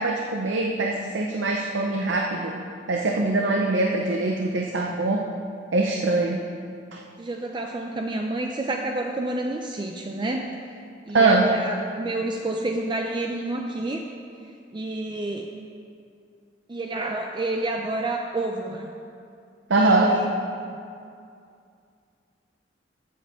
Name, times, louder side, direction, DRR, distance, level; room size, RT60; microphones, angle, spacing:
voice 1, 0.0-2.5 2.9-5.2 5.7-6.4 6.9-7.0 11.1-11.5 19.7-20.1, right 3 dB, 85° right, 0 dB, 0.7 m, -22 dB
voice 2, 7.2-10.5 11.1-14.0 14.7-15.5 16.7-18.9 19.8-20.6, right 2 dB, 25° right, 2 dB, 0.5 m, -29 dB
14.0 x 7.5 x 3.6 m, 2.4 s
head